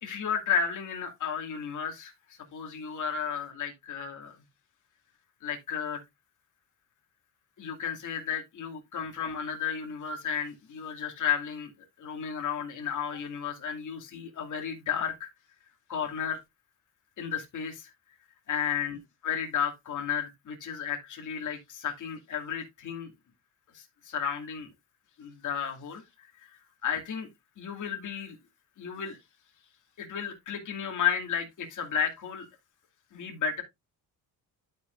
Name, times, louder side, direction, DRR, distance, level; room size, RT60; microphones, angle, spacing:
voice 1, 0.0-4.4 5.4-6.0 7.6-11.7 12.0-15.3 15.9-16.4 17.2-17.9 18.5-23.1 23.7-24.7 25.2-26.0 26.4-27.3 27.6-28.4 28.8-29.2 30.0-32.5 33.1-33.6, left 7 dB, 50° left, 2.4 m, -33 dB
12.0 x 5.2 x 2.5 m
cardioid pair, 110°, 38 cm